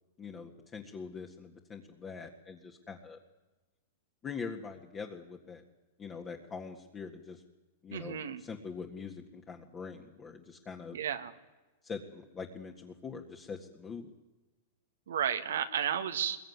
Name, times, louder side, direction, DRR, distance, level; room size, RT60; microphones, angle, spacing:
voice 1, 0.2-3.2 4.2-5.6 6.0-7.4 7.8-11.0 11.8-14.1, left 5 dB, 20° left, 2 dB, 1.8 m, -43 dB
voice 2, 7.9-8.4 10.9-11.3 15.1-16.4, right 8 dB, 90° right, 8 dB, 1.9 m, -32 dB
23.0 x 21.5 x 9.6 m, 1.1 s
hypercardioid pair, 140°, 0 cm